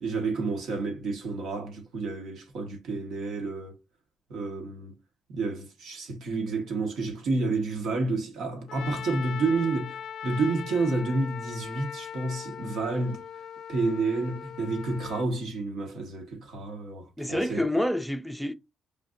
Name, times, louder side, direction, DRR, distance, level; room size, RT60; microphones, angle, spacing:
voice 1, 0.0-3.8 4.3-4.9 5.3-13.2 13.7-17.6, right 3 dB, 75° right, 1.2 m, -30 dB
Trumpet, 8.7-15.3, left 8 dB, 70° left, 0.4 m, -40 dB
voice 2, 17.2-18.5, left 1 dB, ahead, 0.5 m, -27 dB
5.0 x 2.6 x 2.5 m
cardioid pair, 90°, 0 cm